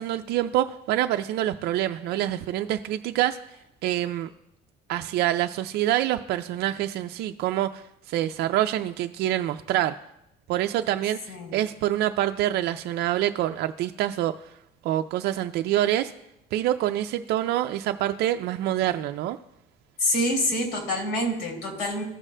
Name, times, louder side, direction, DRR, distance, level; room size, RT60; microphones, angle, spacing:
voice 1, 0.0-3.4 3.8-4.3 4.9-10.0 10.5-14.3 14.8-16.1 16.5-19.4, right 13 dB, 75° right, 6 dB, 0.4 m, -26 dB
voice 2, 20.0-22.0, left 1 dB, 85° left, 1 dB, 3.2 m, -26 dB
15.0 x 6.1 x 2.2 m, 0.82 s
cardioid pair, 110°, 17 cm